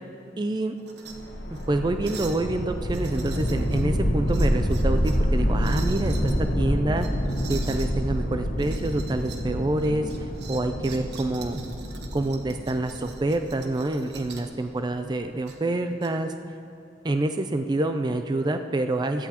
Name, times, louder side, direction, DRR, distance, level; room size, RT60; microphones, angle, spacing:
voice 1, 0.4-0.7 1.5-7.1 7.5-10.1 10.5-11.6 12.1-16.3 17.0-19.3, right 2 dB, 25° right, 7 dB, 0.4 m, -27 dB
sound 1, 0.8-1.2 1.5-1.7 2.0-2.4 2.9-3.9 4.3-5.3 5.6-6.4 7.0-7.9 8.6-9.5 9.8-14.5 15.5-16.1, right 6 dB, 70° right, 1.0 m, -44 dB
sound 2, 1.1-14.2, equal, 80° left, 1.2 m, -27 dB
16.5 x 13.5 x 2.9 m, 2.6 s
head